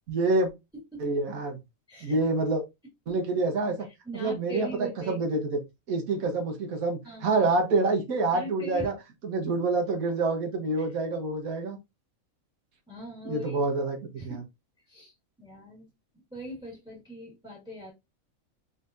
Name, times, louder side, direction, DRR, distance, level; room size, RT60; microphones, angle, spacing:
voice 1, 0.1-0.5 1.0-1.6 2.0-2.6 3.1-3.8 4.1-5.4 5.9-8.9 9.2-11.8 13.2-14.0 14.2-14.4, right 3 dB, 85° right, 4 dB, 1.6 m, -27 dB
voice 2, 1.9-2.2 4.0-5.2 7.0-7.3 8.3-8.9 10.8-10.9 12.9-13.6 14.2-14.4 14.9-15.1 15.4-15.8 16.3-17.9, right 1 dB, 5° right, -1 dB, 1.7 m, -40 dB
4.1 x 3.7 x 2.6 m, 0.22 s
omnidirectional pair, 1.4 m